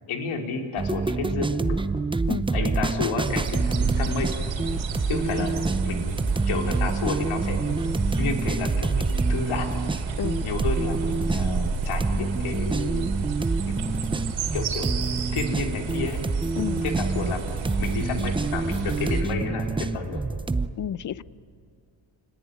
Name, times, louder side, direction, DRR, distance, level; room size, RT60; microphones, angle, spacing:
voice 1, 0.1-1.8 2.5-4.3 5.1-7.8 8.2-9.7 10.4-13.1 13.6-14.2 14.5-14.9 15.3-16.2 16.8-17.5 17.8-20.2, left 4 dB, 75° left, 3 dB, 3.8 m, -31 dB
sound 1, 0.8-20.7, right 3 dB, 10° right, 0.7 m, -27 dB
sound 2, 3.2-19.2, right 5 dB, 65° right, 4.2 m, -31 dB
voice 2, 20.8-21.2, left 9 dB, 40° left, 19 dB, 0.7 m, -30 dB
29.5 x 19.5 x 9.5 m, 2.5 s
cardioid pair, 100°, 50 cm